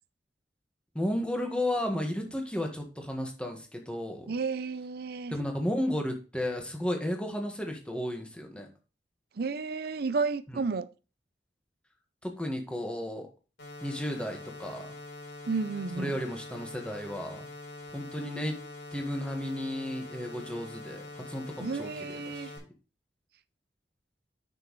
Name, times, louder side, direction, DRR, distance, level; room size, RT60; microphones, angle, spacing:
voice 1, 0.9-4.3 5.3-8.7 12.2-13.3 13.8-14.9 16.0-17.5 17.9-18.6 18.9-21.9 22.3-22.6, left 1 dB, 5° left, 1.6 m, -33 dB
voice 2, 4.3-5.3 9.4-10.9 15.5-16.2 21.6-22.5, right 4 dB, 60° right, 0.5 m, -32 dB
sound 1, 13.6-22.6, left 2 dB, 75° left, 4.3 m, -44 dB
9.1 x 6.3 x 3.2 m
head